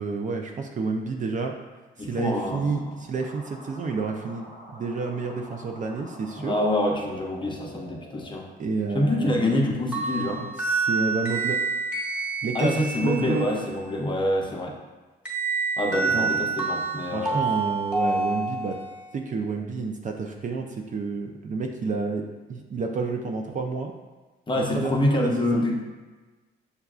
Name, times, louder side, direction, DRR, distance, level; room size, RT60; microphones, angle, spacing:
voice 1, 0.0-1.5 2.1-6.6 8.6-9.6 10.6-11.6 12.4-13.5 16.1-16.3 17.1-18.8 19.1-23.9 24.5-25.7, right 4 dB, 40° right, 3 dB, 0.4 m, -30 dB
voice 2, 2.0-2.9 6.4-8.5 8.9-10.5 12.5-14.8 15.8-17.5 24.5-25.8, left 1 dB, 25° left, 0 dB, 0.7 m, -26 dB
sound 1, 3.1-8.4, left 1 dB, 85° right, 1.4 m, -46 dB
sound 2, 9.9-13.7 15.2-19.0, right 4 dB, 5° right, 1.4 m, -28 dB
6.7 x 2.3 x 2.3 m, 1.2 s
cardioid pair, 90°, 20 cm